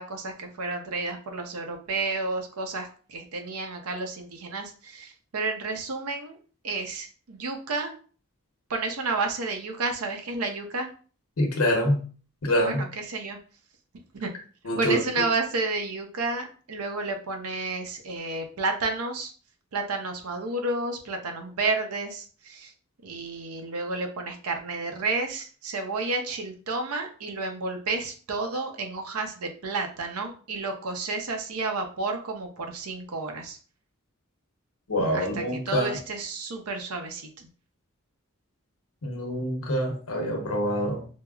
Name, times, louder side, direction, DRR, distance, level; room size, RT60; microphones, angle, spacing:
voice 1, 0.0-6.4 6.6-8.0 8.7-10.9 12.7-13.4 14.2-14.3 14.8-19.3 19.7-22.7 23.0-33.6 35.1-37.5, right 3 dB, 85° right, 4 dB, 0.6 m, -31 dB
voice 2, 11.4-12.0 12.4-12.8 14.6-15.3 34.9-36.0 39.0-41.1, equal, 80° left, 2 dB, 0.8 m, -26 dB
4.5 x 2.0 x 2.3 m, 0.40 s
head